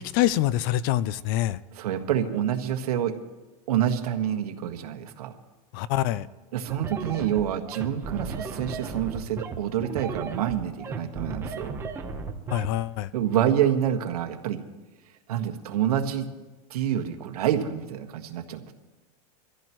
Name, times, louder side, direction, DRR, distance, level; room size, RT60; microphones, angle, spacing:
voice 1, 0.0-1.6 5.7-6.3 12.5-13.1, left 14 dB, 35° left, 19 dB, 0.4 m, -25 dB
voice 2, 1.7-3.1 3.7-5.3 6.5-11.7 13.1-14.6 15.3-16.3 16.7-18.7, right 10 dB, 80° right, 6 dB, 1.6 m, -27 dB
sound 1, 6.7-12.7, right 4 dB, 15° right, 1.0 m, -35 dB
24.0 x 14.5 x 3.1 m, 1.2 s
supercardioid pair, 165°, 19 cm